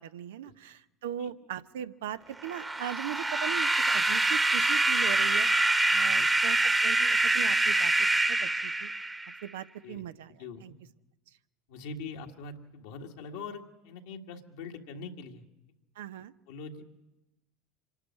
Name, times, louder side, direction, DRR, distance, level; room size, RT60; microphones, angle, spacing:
voice 1, 0.0-5.5 5.9-8.9 9.4-10.7 16.0-16.3, right 11 dB, 80° right, 12 dB, 0.7 m, -39 dB
sound 1, 2.4-9.4, right 2 dB, 15° right, 1.2 m, -25 dB
voice 2, 10.4-10.8 11.7-15.5 16.5-16.8, left 4 dB, 75° left, 2 dB, 1.7 m, -43 dB
25.0 x 11.5 x 9.8 m, 0.98 s
hypercardioid pair, 90°, 0 cm